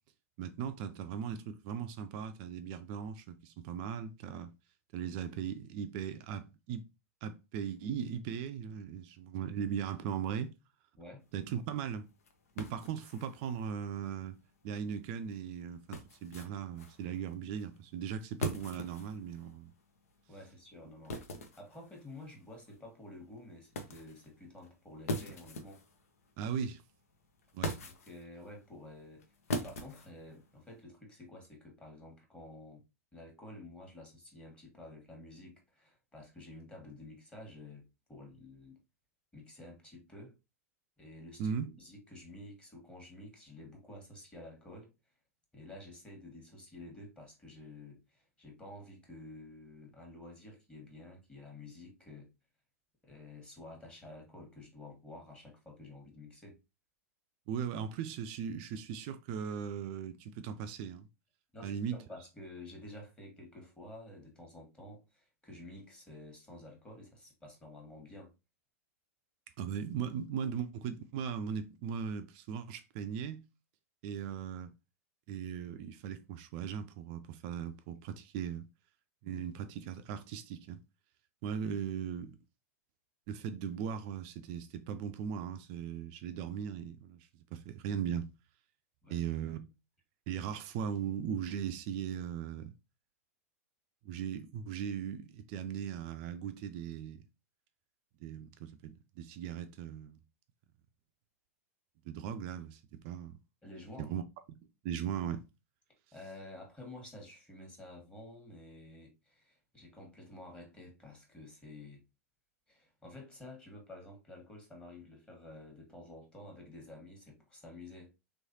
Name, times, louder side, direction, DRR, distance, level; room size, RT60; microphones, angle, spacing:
voice 1, 0.4-4.5 4.9-6.8 7.2-10.5 11.3-12.1 12.6-14.4 14.6-19.7 26.4-26.8 27.5-27.8 41.4-41.8 57.5-61.1 61.6-62.0 69.6-73.4 74.0-74.7 75.3-78.7 79.2-80.8 81.4-82.4 83.3-88.3 89.1-89.7 90.3-92.7 94.0-97.2 98.2-100.2 102.0-103.4 104.0-104.2 104.8-105.4, right 8 dB, 45° right, 0.4 m, -38 dB
sound 1, 11.2-30.8, left 1 dB, 70° left, 0.8 m, -44 dB
voice 2, 20.3-21.2 21.6-25.8 27.8-29.2 29.5-32.8 33.1-38.8 39.3-40.3 41.0-44.9 45.5-52.3 53.0-56.6 61.5-68.3 79.3-79.4 89.0-89.2 103.6-104.1 106.1-112.0 112.7-118.1, left 1 dB, 10° left, 1.3 m, -51 dB
3.4 x 3.1 x 2.7 m
figure-of-eight pair, 100°, 8 cm